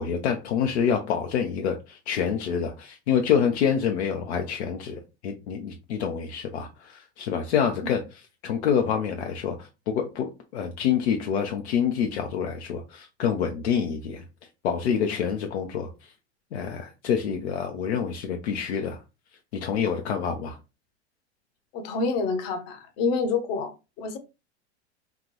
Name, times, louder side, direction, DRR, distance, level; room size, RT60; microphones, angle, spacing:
voice 1, 0.0-8.0 8.4-10.3 10.5-14.2 14.6-15.9 16.5-19.0 19.6-20.6, left 7 dB, 70° left, 0.8 m, -27 dB
voice 2, 21.7-24.2, left 4 dB, 55° left, 1.2 m, -28 dB
5.9 x 2.4 x 3.0 m
hypercardioid pair, 95°, 34 cm